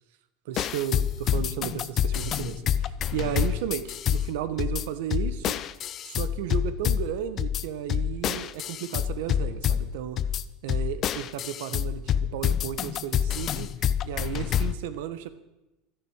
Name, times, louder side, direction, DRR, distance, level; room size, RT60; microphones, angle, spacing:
voice 1, 0.5-5.6 6.0-10.2 10.6-13.7 14.0-15.3, right 10 dB, 75° right, 12 dB, 1.1 m, -34 dB
sound 1, 0.6-14.8, left 9 dB, 35° left, 0.5 m, -28 dB
12.5 x 10.0 x 6.4 m, 1.0 s
supercardioid pair, 155°, 0 cm